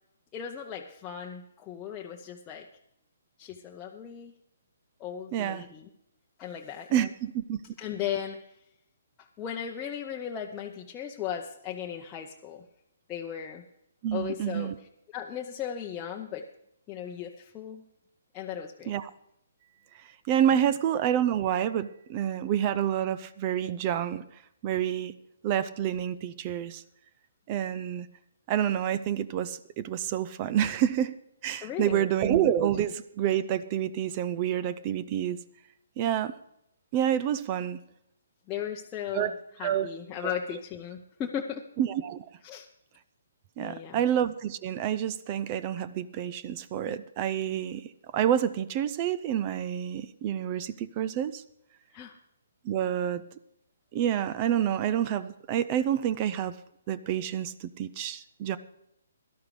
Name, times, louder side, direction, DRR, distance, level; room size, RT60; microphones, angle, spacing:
voice 1, 0.3-2.7 3.4-4.3 5.0-5.9 6.4-7.1 7.8-8.4 9.2-12.6 13.1-13.6 14.1-14.7 15.1-16.4 16.9-17.8 18.3-18.9 20.5-20.7 31.6-32.1 38.5-39.3 39.6-41.7 42.4-42.7 43.6-44.0 51.9-52.2, left 9 dB, 20° left, 0 dB, 0.8 m, -36 dB
voice 2, 5.3-5.7 6.9-7.6 14.0-14.8 18.9-19.1 20.3-24.2 24.6-25.1 25.4-26.8 27.5-28.1 28.5-31.1 31.4-35.4 36.0-36.3 36.9-37.8 39.1-39.3 39.6-39.9 40.2-40.3 41.8-42.2 43.6-51.4 52.6-53.2 53.9-56.5 56.9-58.6, right 10 dB, 35° right, 15 dB, 0.5 m, -28 dB
17.0 x 12.0 x 3.3 m, 0.78 s
hypercardioid pair, 140°, 0 cm